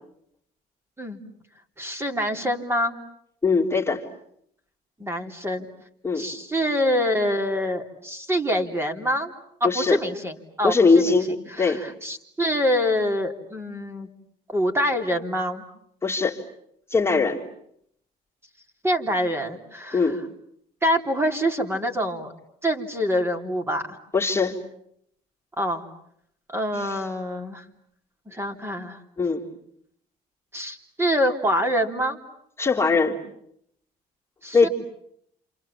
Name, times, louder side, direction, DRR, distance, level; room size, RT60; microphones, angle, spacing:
voice 1, 1.8-2.9 5.0-5.7 6.2-9.3 9.6-10.7 11.0-11.1 11.6-14.1 14.5-15.6 18.8-20.0 20.8-22.3 22.6-23.8 25.6-25.9 26.5-27.6 28.3-29.0 30.5-32.2 34.4-34.7, equal, 15° right, 4 dB, 3.6 m, -25 dB
voice 2, 3.4-4.0 6.0-6.3 9.6-10.0 10.6-11.8 16.0-16.4 16.9-17.4 19.9-20.2 24.1-24.6 26.7-27.0 29.2-29.4 32.6-33.2 34.5-34.7, left 4 dB, 15° left, -2 dB, 3.5 m, -21 dB
29.0 x 28.0 x 7.3 m, 0.72 s
cardioid pair, 110°, 17 cm